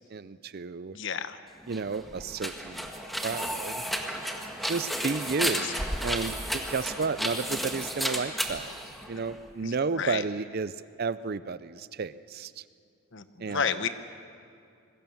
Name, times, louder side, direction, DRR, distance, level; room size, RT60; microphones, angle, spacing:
voice 1, 0.1-1.0 1.7-2.9 3.2-3.8 4.6-8.7 9.1-12.6 13.4-13.9, right 4 dB, 45° right, 16 dB, 0.5 m, -32 dB
voice 2, 0.9-1.4 9.6-10.2 13.1-13.9, left 6 dB, 55° left, 11 dB, 1.0 m, -31 dB
sound 1, 1.6-9.5, equal, ahead, 1.6 m, -33 dB
26.0 x 21.0 x 7.1 m, 2.4 s
head